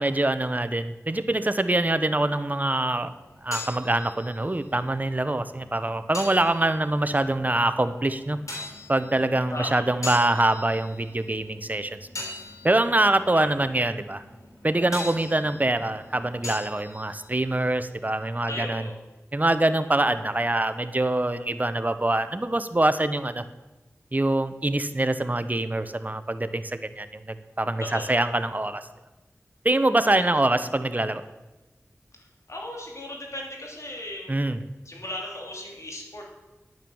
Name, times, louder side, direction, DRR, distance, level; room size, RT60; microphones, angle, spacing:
voice 1, 0.0-3.1 3.4-8.4 8.9-12.0 12.6-14.2 14.6-18.9 19.3-23.5 24.1-28.8 29.6-31.2 34.3-34.6, right 2 dB, 30° right, 11 dB, 0.9 m, -24 dB
sound 1, 3.1-18.6, left 2 dB, 80° left, 3.5 m, -42 dB
voice 2, 9.5-9.8 13.3-13.4 18.5-18.9 27.8-28.1 32.5-34.3 34.8-36.3, left 1 dB, 65° left, -1 dB, 3.0 m, -36 dB
10.5 x 9.2 x 7.1 m, 1.1 s
wide cardioid pair, 40°, 5 cm